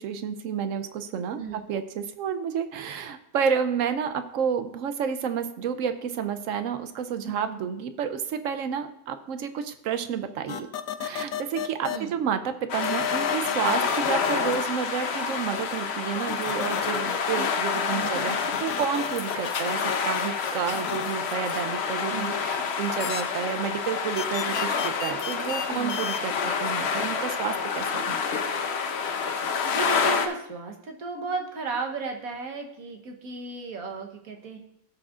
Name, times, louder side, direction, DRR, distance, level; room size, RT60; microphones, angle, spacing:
voice 1, 0.0-10.7 11.0-28.4, right 7 dB, 75° right, 10 dB, 0.9 m, -30 dB
voice 2, 1.4-1.8 11.9-12.1 17.9-18.3 22.1-22.3 25.7-26.1 29.6-34.6, right 4 dB, 90° right, 3 dB, 1.5 m, -34 dB
sound 1, 10.5-12.0 12.8-14.6 16.3-17.5 17.7-21.1 23.0-23.2 24.2-25.6 25.9-26.2, left 9 dB, 80° left, 1.1 m, -33 dB
sound 2, 12.7-30.3, left 6 dB, 55° left, 0.9 m, -28 dB
14.5 x 6.1 x 2.4 m, 0.77 s
omnidirectional pair, 1.4 m